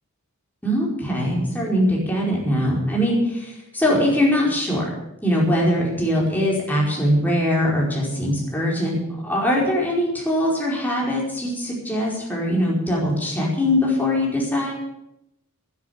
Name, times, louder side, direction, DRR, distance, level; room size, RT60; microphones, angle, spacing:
voice 1, 0.6-4.9 5.2-9.0 9.2-14.7, left 1 dB, 10° left, -4 dB, 4.8 m, -22 dB
12.0 x 10.5 x 8.9 m, 0.85 s
head